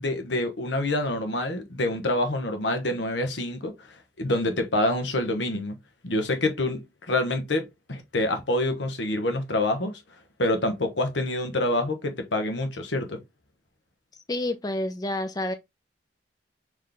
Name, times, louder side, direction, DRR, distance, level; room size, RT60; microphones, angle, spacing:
voice 1, 0.0-3.7 4.2-5.8 6.0-9.9 10.4-13.2, left 1 dB, 85° left, 1.0 m, -26 dB
voice 2, 14.3-15.5, left 1 dB, 20° left, 0.4 m, -28 dB
4.0 x 3.1 x 3.3 m
head